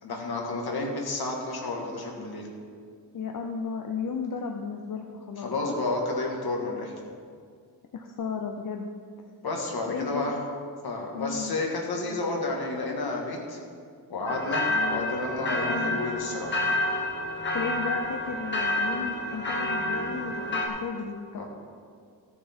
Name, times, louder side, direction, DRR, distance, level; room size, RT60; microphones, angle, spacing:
voice 1, 0.0-2.5 5.4-7.0 9.4-10.4 10.8-13.6 14.1-16.6 21.3-21.4, left 2 dB, 80° left, 0 dB, 1.8 m, -31 dB
voice 2, 3.1-5.8 7.9-8.9 9.9-10.3 11.1-11.6 14.7-15.1 15.7-16.0 17.5-21.2, left 5 dB, 60° left, 3 dB, 0.6 m, -34 dB
sound 1, 14.3-20.7, left 1 dB, 30° left, 1.2 m, -29 dB
14.5 x 6.7 x 4.4 m, 2.1 s
wide cardioid pair, 180°, 37 cm